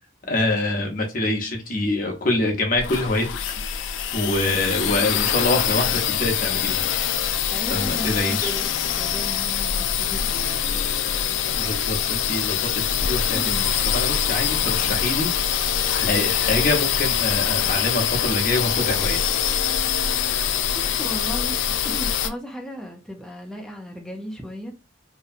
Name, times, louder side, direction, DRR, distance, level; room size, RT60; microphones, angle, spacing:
voice 1, 0.3-3.3 4.1-6.9 7.7-8.5 11.5-13.6 13.9-15.3 15.9-19.2, left 2 dB, 45° left, 0.7 m, -25 dB
sound 1, 2.7-22.3, left 9 dB, 75° left, 0.3 m, -24 dB
voice 2, 7.5-8.7 9.0-11.4 13.3-13.7 14.6-14.9 20.7-24.7, equal, 5° left, 0.4 m, -36 dB
2.8 x 2.1 x 2.4 m
head